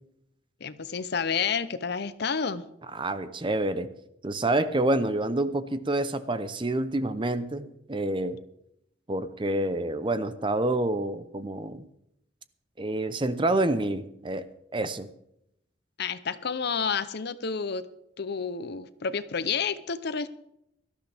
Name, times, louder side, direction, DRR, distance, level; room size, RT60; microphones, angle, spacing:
voice 1, 0.6-2.6 16.0-17.9 18.2-20.3, left 6 dB, 60° left, 14 dB, 0.7 m, -30 dB
voice 2, 2.9-3.9 4.2-8.4 9.1-11.9 12.8-14.5 14.7-15.1, right 2 dB, 25° right, 12 dB, 0.7 m, -28 dB
18.0 x 13.0 x 3.5 m, 0.78 s
head